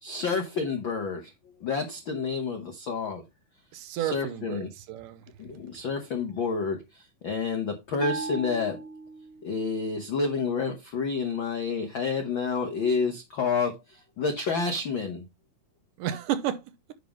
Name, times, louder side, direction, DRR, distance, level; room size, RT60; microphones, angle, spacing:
voice 1, 0.0-1.3 1.6-3.2 3.9-4.7 5.4-8.8 9.4-15.2, left 5 dB, 80° left, 1.1 m, -29 dB
voice 2, 3.7-5.2 16.0-16.6, right 11 dB, 75° right, 2.2 m, -31 dB
Bell, 8.0-9.6, right 3 dB, 25° right, 1.5 m, -36 dB
10.0 x 3.7 x 5.2 m
omnidirectional pair, 4.0 m